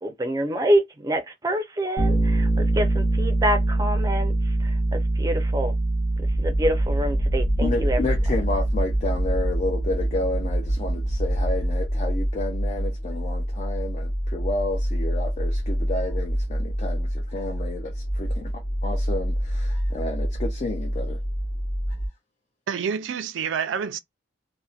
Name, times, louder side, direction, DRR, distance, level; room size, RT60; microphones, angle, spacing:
voice 1, 0.0-5.7 6.4-8.0, right 1 dB, 20° right, 0.5 m, -26 dB
Bass guitar, 2.0-11.8, right 2 dB, 90° left, 0.9 m, -25 dB
sound 1, 6.2-22.1, equal, 55° left, 1.1 m, -27 dB
voice 2, 7.6-21.2, left 2 dB, 35° left, 0.4 m, -31 dB
voice 3, 22.7-24.0, right 7 dB, 80° right, 0.4 m, -28 dB
2.6 x 2.1 x 2.3 m
head